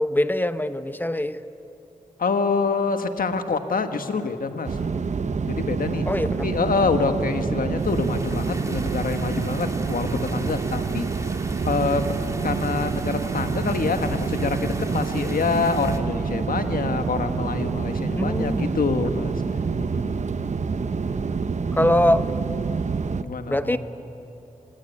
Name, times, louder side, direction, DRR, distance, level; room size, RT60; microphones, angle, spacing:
voice 1, 0.0-1.4 6.0-6.5 18.2-18.7 21.7-22.2 23.5-23.8, left 1 dB, 15° left, 11 dB, 0.9 m, -22 dB
voice 2, 2.2-4.8 5.5-11.1 11.6-12.0 12.4-19.3 19.8-20.2 23.2-23.8, left 4 dB, 85° left, 7 dB, 1.5 m, -26 dB
sound 1, 4.6-23.2, right 5 dB, 55° right, 0.8 m, -27 dB
sound 2, 7.8-16.0, right 1 dB, 20° right, 2.2 m, -40 dB
27.0 x 17.5 x 9.8 m, 2.9 s
wide cardioid pair, 75°, 14 cm